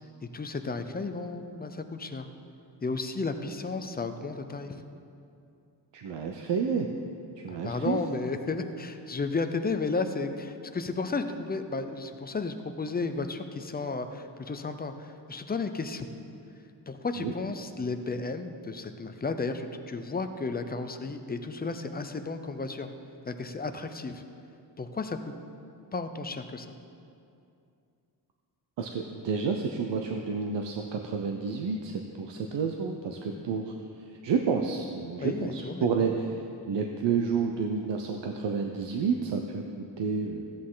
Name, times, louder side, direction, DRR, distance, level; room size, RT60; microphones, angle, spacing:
voice 1, 0.2-2.3 2.8-4.8 7.5-16.1 16.9-22.9 23.3-24.2 24.8-25.3 25.9-26.7 35.2-36.1, left 3 dB, 25° left, 8 dB, 0.4 m, -33 dB
voice 2, 5.9-6.9 7.4-8.0 17.2-17.3 28.8-33.7 34.2-36.3 36.7-40.5, right 5 dB, 85° right, 3 dB, 0.7 m, -30 dB
15.0 x 8.5 x 3.8 m, 2.6 s
wide cardioid pair, 160°, 42 cm